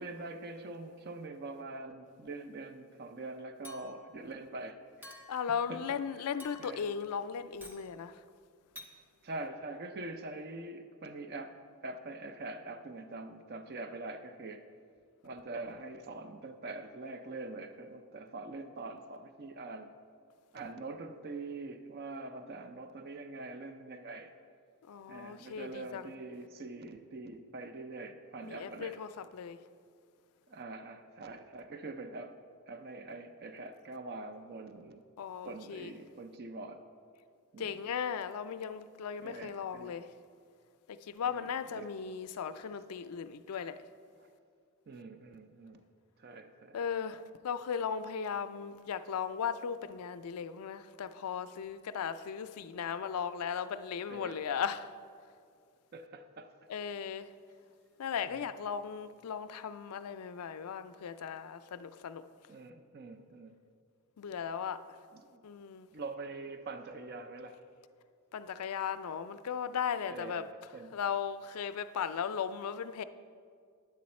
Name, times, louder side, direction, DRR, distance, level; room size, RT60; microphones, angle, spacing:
voice 1, 0.0-5.2 5.7-5.8 6.2-6.3 6.6-6.9 9.2-14.6 15.2-19.9 20.5-24.3 25.1-29.0 30.5-35.0 35.4-36.8 37.5-37.7 39.2-40.0 41.3-41.5 41.7-41.9 43.5-43.7 44.2-44.3 44.9-45.8 46.2-46.8 54.1-54.4 55.9-56.5 58.3-58.5 62.5-63.6 65.1-65.4 65.9-67.6 70.1-71.0, right 2 dB, 45° right, 0.5 m, -44 dB
Chink clink, 3.6-4.2 5.0-5.5 6.4-6.9 7.6-7.9 8.8-8.9, left 2 dB, 10° right, 0.7 m, -50 dB
voice 2, 5.3-8.2 24.9-26.0 28.4-29.6 35.2-35.9 37.6-40.1 40.9-43.8 46.7-54.9 56.7-57.3 58.0-62.2 64.2-64.8 65.4-65.9 68.3-70.4 70.9-73.0, left 7 dB, 80° left, 0.4 m, -37 dB
9.5 x 7.7 x 4.2 m
head